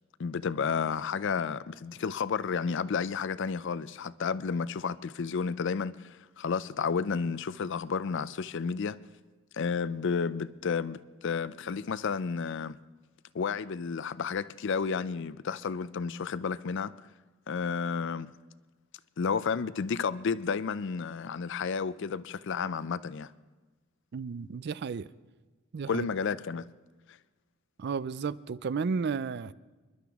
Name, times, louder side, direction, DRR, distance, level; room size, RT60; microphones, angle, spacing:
voice 1, 0.2-9.0 9.5-12.8 13.3-16.9 17.5-18.3 19.2-23.3 25.9-26.7, left 5 dB, 60° left, 0.5 m, -31 dB
voice 2, 24.1-25.1 25.7-26.1 27.8-29.5, right 5 dB, 55° right, 0.4 m, -33 dB
26.5 x 11.5 x 3.6 m
head